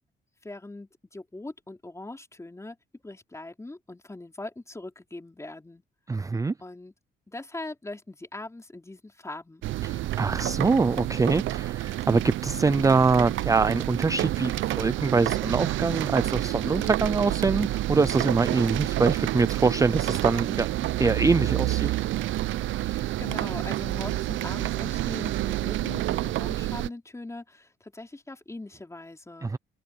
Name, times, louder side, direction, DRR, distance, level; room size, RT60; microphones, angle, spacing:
voice 1, 0.4-2.8 3.0-5.8 6.6-6.9 7.3-9.7 22.8-29.5, left 2 dB, 15° left, 4.6 m, -41 dB
voice 2, 6.1-6.5 9.8-21.9 29.4-29.6, right 4 dB, 15° right, 0.5 m, -24 dB
sound 1, 9.6-26.9, right 15 dB, 80° right, 0.6 m, -29 dB
cardioid pair, 90°, 20 cm